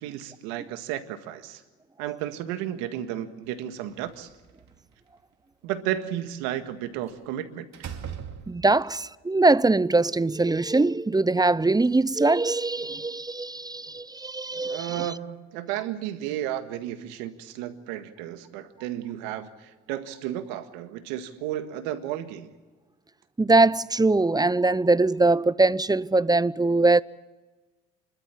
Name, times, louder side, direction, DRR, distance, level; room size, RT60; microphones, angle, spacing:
voice 1, 0.0-1.6 2.0-4.3 5.6-7.7 14.7-22.5, right 12 dB, 80° right, 1.8 m, -33 dB
Slam, 3.9-4.9 7.1-7.3 7.7-8.9, right 8 dB, 50° right, 2.7 m, -40 dB
voice 2, 8.5-15.1 23.4-27.0, right 2 dB, 10° right, 0.6 m, -22 dB
28.5 x 13.0 x 9.9 m
hypercardioid pair, 65°, 34 cm